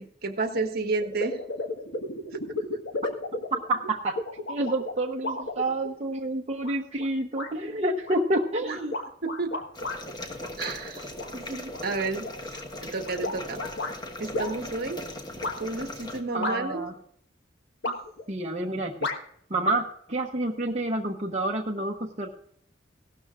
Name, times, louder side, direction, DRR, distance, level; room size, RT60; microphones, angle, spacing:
voice 1, 0.0-1.4 2.3-2.4 2.7-2.8 8.7-8.8 9.2-9.5 10.6-13.6 14.2-15.0 15.6-16.8 17.8-17.9, right 3 dB, 55° right, 6 dB, 1.3 m, -31 dB
sound 1, 0.5-0.6 1.0-6.1 6.6-7.1 7.3-7.5 8.0-10.0 10.4-11.3 11.7-13.9 14.3-14.5 15.4-15.5 16.4-16.9 17.8-18.3 19.0-19.2, left 2 dB, 65° left, 1.5 m, -33 dB
voice 2, 3.5-4.2 4.5-8.9 16.3-16.9 18.3-19.0 19.5-22.3, right 1 dB, 35° right, 0 dB, 0.9 m, -28 dB
sound 2, 9.7-16.2, left 1 dB, 20° left, 1.3 m, -39 dB
16.5 x 12.5 x 2.5 m, 0.65 s
head